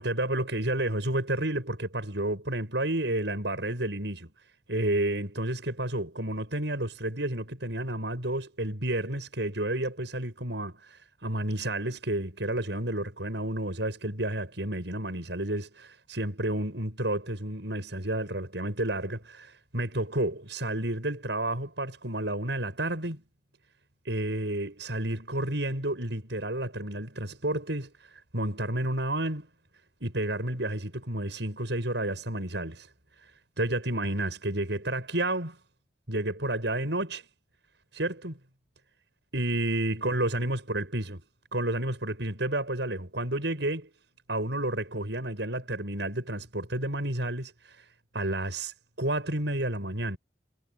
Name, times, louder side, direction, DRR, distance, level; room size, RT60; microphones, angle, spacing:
voice 1, 0.0-4.3 4.7-23.2 24.0-27.9 28.3-29.5 30.0-32.9 33.6-35.6 36.1-37.2 37.9-38.4 39.3-41.2 41.5-43.9 44.3-47.9 48.1-50.2, right 1 dB, 75° right, 6.7 m, -31 dB
head